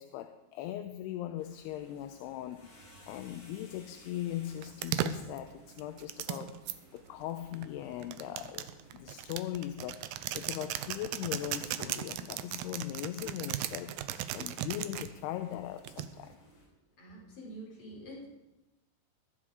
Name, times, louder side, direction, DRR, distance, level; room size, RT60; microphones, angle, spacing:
voice 1, 0.0-6.6 6.9-14.0 14.3-16.4, left 12 dB, 80° left, 8 dB, 2.6 m, -40 dB
sound 1, 1.4-16.6, left 1 dB, 50° left, 7.1 m, -60 dB
sound 2, 4.6-6.8 7.5-15.1 15.9-16.3, right 12 dB, 90° right, 2.1 m, -37 dB
voice 2, 17.0-18.3, right 1 dB, 35° left, -4 dB, 5.3 m, -46 dB
20.5 x 11.0 x 5.0 m, 1.0 s
omnidirectional pair, 4.9 m